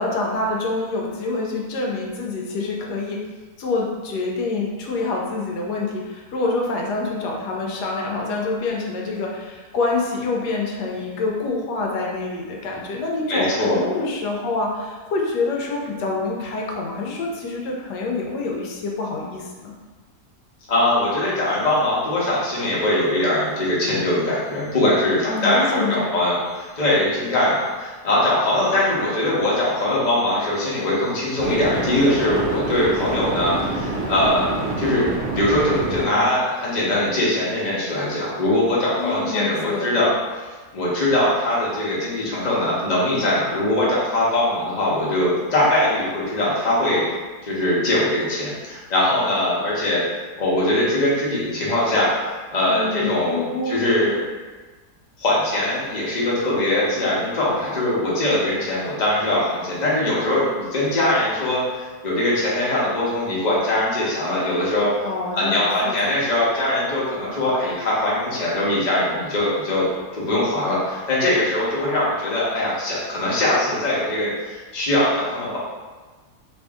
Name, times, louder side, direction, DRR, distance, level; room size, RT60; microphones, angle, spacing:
voice 1, 0.0-3.2 3.6-19.7 25.1-26.1 39.0-40.0 52.7-53.7 65.0-66.2, left 3 dB, 85° left, -1 dB, 1.2 m, -26 dB
voice 2, 13.3-13.8 20.7-34.5 34.8-35.1 35.3-40.1 40.7-47.0 47.5-50.0 50.4-52.1 52.5-54.2 55.2-61.6 62.0-64.9 65.3-69.9 70.1-75.6, left 1 dB, 35° left, -7 dB, 0.8 m, -21 dB
sound 1, 26.5-26.7 31.4-36.0, right 2 dB, 85° right, 0.5 m, -27 dB
3.0 x 2.6 x 3.5 m, 1.3 s
omnidirectional pair, 1.7 m